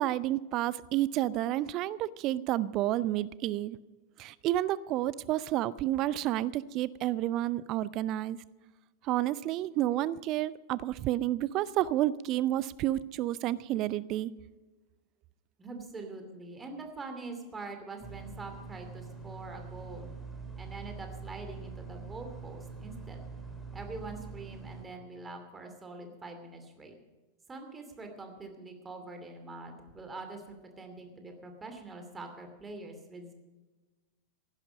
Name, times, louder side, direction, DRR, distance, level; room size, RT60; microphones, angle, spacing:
voice 1, 0.0-3.8 4.2-8.4 9.0-14.3, right 14 dB, 40° right, 21 dB, 0.5 m, -30 dB
voice 2, 15.6-20.1 20.6-23.3 23.7-27.0 27.5-33.3, right 3 dB, 15° right, 5 dB, 2.6 m, -44 dB
sound 1, 18.0-24.8, right 5 dB, 5° left, 3.2 m, -44 dB
15.5 x 11.5 x 5.2 m, 1.2 s
figure-of-eight pair, 90°, 0 cm